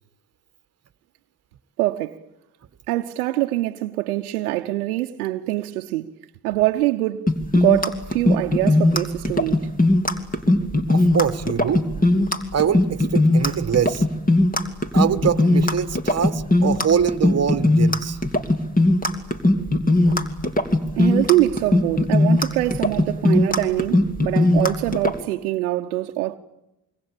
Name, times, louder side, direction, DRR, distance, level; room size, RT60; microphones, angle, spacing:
voice 1, 1.8-2.2 2.9-6.1 6.4-9.6 21.0-26.4, right 16 dB, 90° right, 0.9 m, -24 dB
sound 1, 7.3-25.2, left 2 dB, 20° left, 3.0 m, -18 dB
voice 2, 10.9-12.0 12.5-14.0 14.9-18.2 20.0-20.2, right 8 dB, 35° right, 1.7 m, -24 dB
25.5 x 23.5 x 8.9 m
hypercardioid pair, 70°, 43 cm